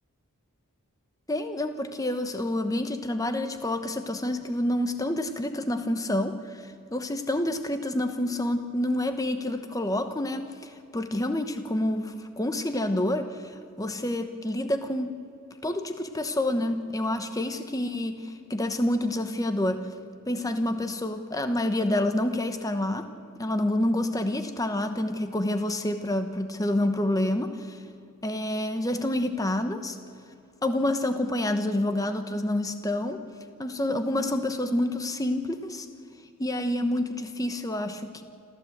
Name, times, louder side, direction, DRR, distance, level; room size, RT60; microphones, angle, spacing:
voice 1, 1.3-6.6 6.9-13.5 13.8-15.2 15.6-19.9 20.3-23.1 23.4-27.8 28.2-30.0 30.6-33.2 33.6-35.9 36.4-38.2, left 1 dB, 15° left, 8 dB, 1.0 m, -28 dB
26.5 x 15.0 x 8.0 m, 2.7 s
head